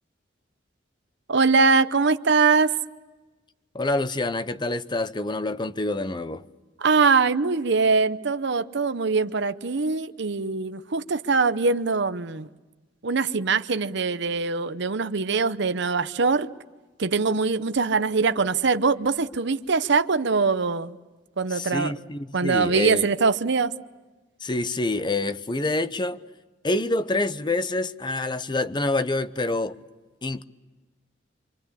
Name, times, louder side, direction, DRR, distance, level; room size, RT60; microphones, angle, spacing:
voice 1, 1.3-2.7 6.8-12.5 13.0-16.5 17.0-20.9 21.4-21.9 22.3-23.7, right 4 dB, 65° right, 0.8 m, -22 dB
voice 2, 3.7-6.4 21.5-23.1 24.4-26.2 26.6-29.8 30.2-30.4, left 2 dB, 25° left, 0.8 m, -27 dB
27.0 x 25.0 x 8.4 m
head